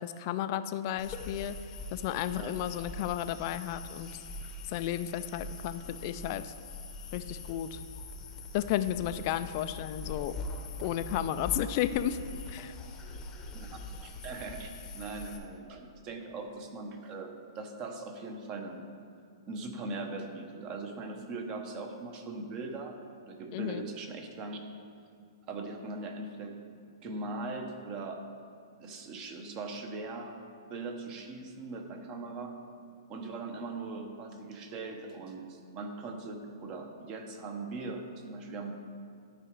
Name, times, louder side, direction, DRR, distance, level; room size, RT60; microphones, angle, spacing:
voice 1, 0.0-1.5 1.9-4.1 4.7-6.5 7.1-7.8 8.5-10.3 10.8-12.2 12.5-12.7 23.5-23.9, left 11 dB, 40° left, 11 dB, 0.3 m, -33 dB
sound 1, 1.0-15.4, left 2 dB, 20° left, 0.8 m, -43 dB
voice 2, 14.0-14.7 14.9-18.8 19.5-23.0 23.3-24.6 25.5-26.6 27.0-28.2 28.8-30.4 30.7-32.6 33.1-38.7, right 3 dB, 30° right, 4 dB, 1.0 m, -40 dB
12.0 x 4.9 x 4.7 m, 2.3 s
hypercardioid pair, 145°, 3 cm